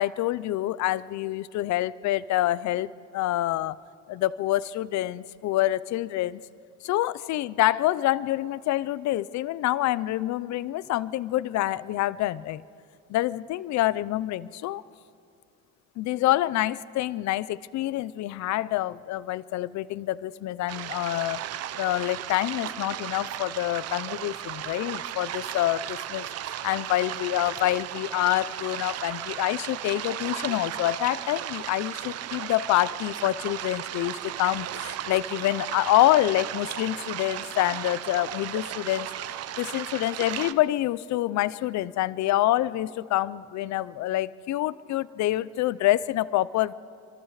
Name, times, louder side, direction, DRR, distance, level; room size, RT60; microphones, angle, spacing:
voice 1, 0.0-3.8 4.1-6.4 6.8-12.6 13.1-14.8 16.0-21.4 21.8-39.1 39.6-46.7, left 15 dB, 50° left, 19 dB, 0.6 m, -26 dB
sound 1, 20.7-40.5, right 11 dB, 45° right, 0.7 m, -35 dB
27.0 x 24.0 x 4.9 m, 2.4 s
cardioid pair, 160°, 35 cm